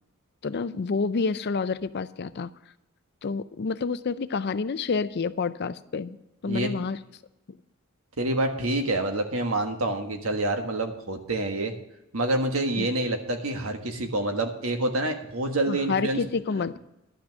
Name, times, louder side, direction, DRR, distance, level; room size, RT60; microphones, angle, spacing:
voice 1, 0.4-2.5 3.2-6.2 6.4-7.0 7.5-7.6 12.8-12.9 15.7-16.8, left 4 dB, 50° left, 14 dB, 0.5 m, -28 dB
voice 2, 8.2-11.7 12.1-16.2, right 2 dB, 80° right, 4 dB, 1.5 m, -27 dB
11.5 x 6.1 x 7.7 m, 0.90 s
head